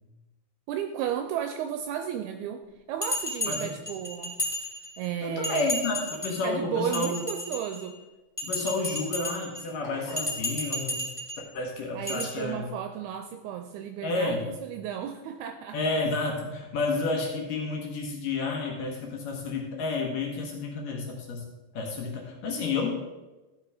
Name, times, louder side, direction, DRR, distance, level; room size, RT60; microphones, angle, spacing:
voice 1, 0.7-2.6 2.9-4.4 5.0-5.7 6.4-8.0 11.9-15.8, right 9 dB, 80° right, 6 dB, 2.3 m, -33 dB
Bell, 3.0-5.1 5.4-6.4 6.8-7.9 8.4-9.6 10.1-11.4 12.1-12.2, left 1 dB, 15° left, 1.1 m, -33 dB
voice 2, 5.2-6.0 6.2-7.2 8.4-11.1 11.5-12.7 14.0-14.5 15.7-21.5 21.7-22.9, left 3 dB, 65° left, 0 dB, 2.6 m, -30 dB
sound 1, 9.8-10.5, left 3 dB, 85° left, 3.6 m, -43 dB
13.5 x 6.1 x 4.9 m, 1.1 s
omnidirectional pair, 4.9 m